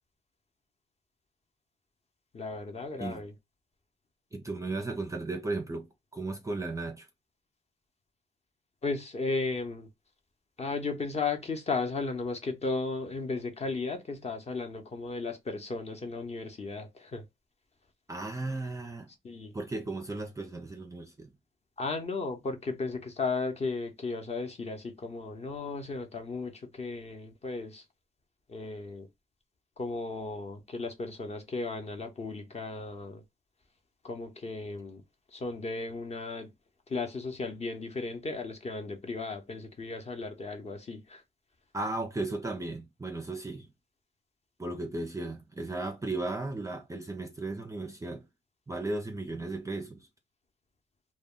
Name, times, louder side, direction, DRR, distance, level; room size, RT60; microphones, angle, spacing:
voice 1, 2.3-3.3 8.8-9.9 10.6-17.2 19.2-19.5 21.8-27.8 28.5-29.1 29.8-33.2 34.0-35.0 35.3-36.5 36.9-41.2, left 3 dB, 30° left, 0.7 m, -35 dB
voice 2, 4.3-7.1 18.1-19.1 19.5-21.3 41.7-43.7 44.6-48.3 48.7-50.1, right 2 dB, 15° right, 0.4 m, -35 dB
2.1 x 2.1 x 3.6 m
cardioid pair, 90°, 20 cm